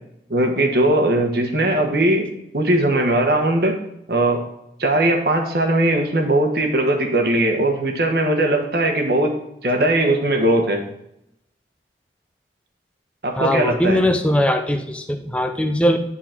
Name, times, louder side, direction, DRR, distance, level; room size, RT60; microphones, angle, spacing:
voice 1, 0.3-2.3 2.5-3.8 4.1-4.4 4.8-9.3 9.6-10.8 13.2-14.0, right 1 dB, 55° right, 3 dB, 1.2 m, -19 dB
voice 2, 13.4-16.0, left 1 dB, 5° left, 5 dB, 0.6 m, -20 dB
10.0 x 4.1 x 4.4 m, 0.80 s
head